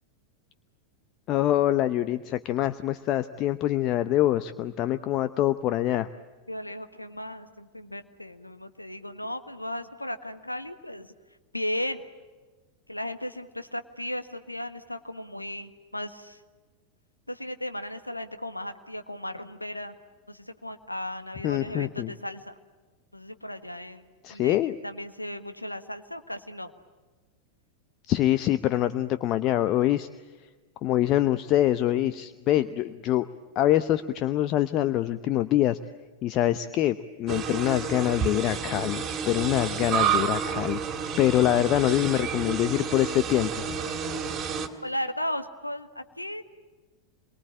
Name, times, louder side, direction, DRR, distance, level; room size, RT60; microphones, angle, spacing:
voice 1, 1.3-6.1 21.4-22.1 24.2-24.7 28.1-30.1 30.8-33.3 33.6-35.8 36.2-43.6, left 13 dB, 35° left, 12 dB, 0.8 m, -25 dB
voice 2, 6.5-11.1 11.5-12.0 12.9-16.4 17.3-20.0 20.3-22.6 23.1-24.0 24.3-24.6 24.8-26.7 44.8-46.4, left 1 dB, 85° left, 9 dB, 1.5 m, -35 dB
sound 1, 37.3-44.7, right 7 dB, 25° right, 2.8 m, -30 dB
28.0 x 23.0 x 8.7 m, 1.3 s
figure-of-eight pair, 90°, 0 cm